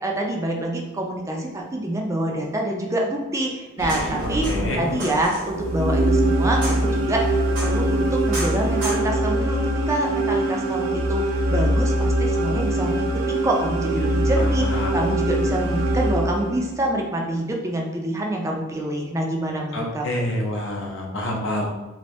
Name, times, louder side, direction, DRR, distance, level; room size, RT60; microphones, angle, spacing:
voice 1, 0.0-4.5 4.8-7.3 7.6-9.6 9.9-13.1 13.4-20.3, right 1 dB, 15° right, 0 dB, 0.4 m, -26 dB
sound 1, 3.8-9.0, equal, 65° right, 1.0 m, -31 dB
voice 2, 4.2-4.8 14.4-15.0 19.7-21.7, left 1 dB, 60° left, -1 dB, 0.6 m, -28 dB
sound 2, 5.5-16.8, right 1 dB, 85° right, 0.4 m, -22 dB
2.8 x 2.6 x 3.2 m, 1.1 s
head